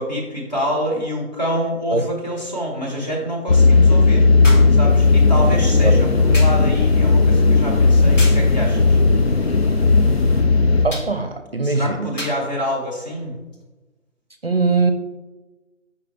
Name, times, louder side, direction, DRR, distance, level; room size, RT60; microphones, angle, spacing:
voice 1, 0.0-4.3 4.7-9.0 11.6-13.3, equal, 35° left, 1.6 m, -26 dB
sound 1, 3.5-10.9, left 3 dB, 55° left, 0.5 m, -15 dB
sound 2, 4.4-4.8 6.3-6.7 8.2-8.5 10.9-11.2 12.2-12.5 13.5-13.6, left 1 dB, 70° left, 1.9 m, -31 dB
sound 3, 4.9-10.4, left 1 dB, 5° right, 1.5 m, -32 dB
voice 2, 10.8-12.1 14.4-14.9, right 3 dB, 50° right, 0.6 m, -21 dB
7.8 x 5.7 x 3.3 m
figure-of-eight pair, 175°, 39 cm